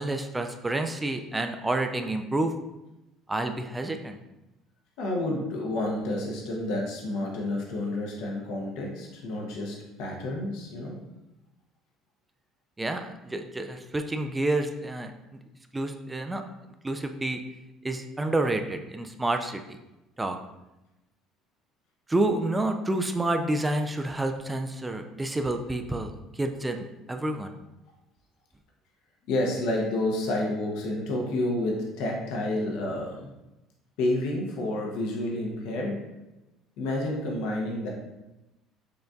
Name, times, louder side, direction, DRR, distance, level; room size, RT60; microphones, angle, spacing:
voice 1, 0.0-2.5 3.3-4.2 12.8-15.1 15.7-16.4 16.8-17.4 17.8-19.6 20.2-20.4 22.1-26.1 26.4-27.5, right 2 dB, 15° right, 5 dB, 0.4 m, -29 dB
voice 2, 5.0-11.0 29.3-33.3 34.0-36.0 36.8-37.9, left 1 dB, 75° left, -1 dB, 0.7 m, -29 dB
6.5 x 2.5 x 2.3 m, 0.98 s
supercardioid pair, 75°, 0 cm